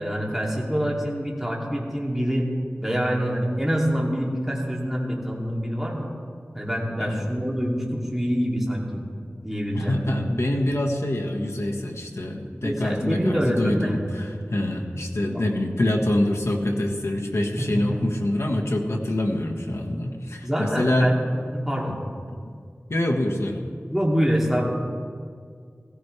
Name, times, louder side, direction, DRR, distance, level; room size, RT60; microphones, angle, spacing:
voice 1, 0.0-2.5 2.8-6.1 6.5-9.0 9.4-10.0 12.5-14.0 15.2-15.4 17.6-18.0 20.4-22.0 23.9-24.7, equal, 5° right, -3 dB, 2.7 m, -26 dB
voice 2, 7.0-7.3 9.7-21.1 22.9-23.6, left 1 dB, 70° left, 2 dB, 1.5 m, -25 dB
16.0 x 16.0 x 3.3 m, 2.1 s
wide cardioid pair, 45°, 5 cm